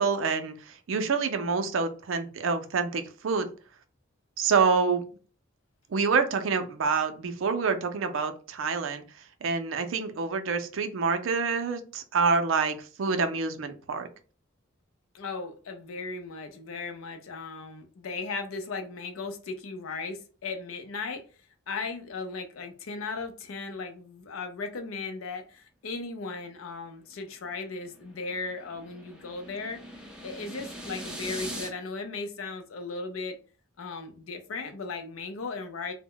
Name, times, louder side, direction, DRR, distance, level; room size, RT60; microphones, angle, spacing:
voice 1, 0.0-3.5 4.4-5.0 5.9-9.0 9.4-14.1, right 5 dB, 70° right, 8 dB, 0.4 m, -27 dB
voice 2, 15.1-21.2 21.7-29.8 30.2-33.4 33.8-35.9, left 4 dB, 85° left, 7 dB, 0.5 m, -37 dB
sound 1, 27.4-31.7, equal, 5° right, 0.4 m, -41 dB
2.1 x 2.0 x 3.7 m, 0.37 s
head